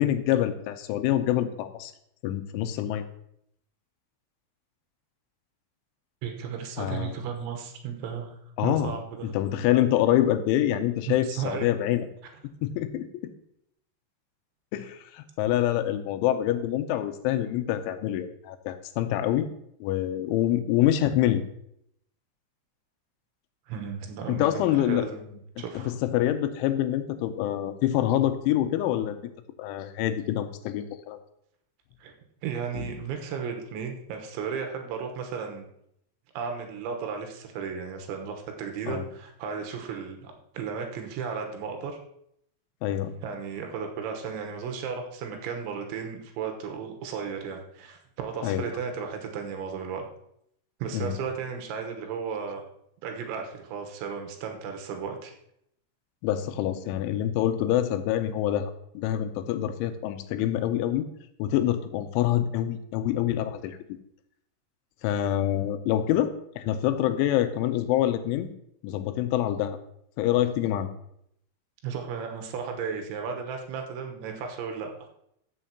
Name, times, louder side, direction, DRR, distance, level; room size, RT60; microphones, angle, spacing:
voice 1, 0.0-1.9 2.2-3.0 6.8-7.2 8.6-8.9 9.2-12.1 12.6-13.3 14.7-19.5 19.8-21.4 24.3-25.1 25.6-29.2 29.6-31.2 32.8-32.9 38.9-39.1 42.8-43.1 48.4-48.7 50.9-51.2 56.2-61.1 61.4-63.8 65.0-68.5 68.8-69.8 70.2-70.9, left 12 dB, 85° left, 10 dB, 3.1 m, -26 dB
voice 2, 6.2-9.3 11.1-11.7 23.7-25.9 32.0-32.1 32.4-35.7 36.3-42.0 43.2-50.1 50.8-52.6 53.0-55.3 71.8-74.9, right 6 dB, 80° right, 3 dB, 3.4 m, -34 dB
14.5 x 6.7 x 2.9 m, 0.74 s
omnidirectional pair, 5.5 m